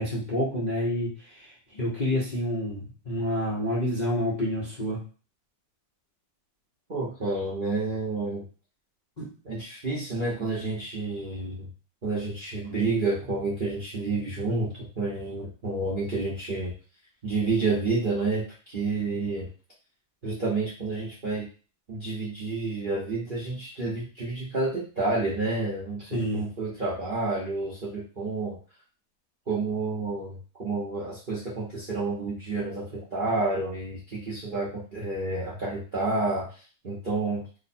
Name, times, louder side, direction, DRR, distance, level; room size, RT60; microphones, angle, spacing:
voice 1, 0.0-5.0 9.2-9.3 26.1-26.4, equal, 40° left, -7 dB, 0.6 m, -28 dB
voice 2, 6.9-8.4 9.4-11.7 12.0-16.7 17.2-19.5 20.2-21.5 21.9-28.6 29.5-37.6, right 3 dB, 45° right, -6 dB, 0.6 m, -29 dB
3.0 x 2.2 x 4.2 m, 0.37 s
omnidirectional pair, 2.1 m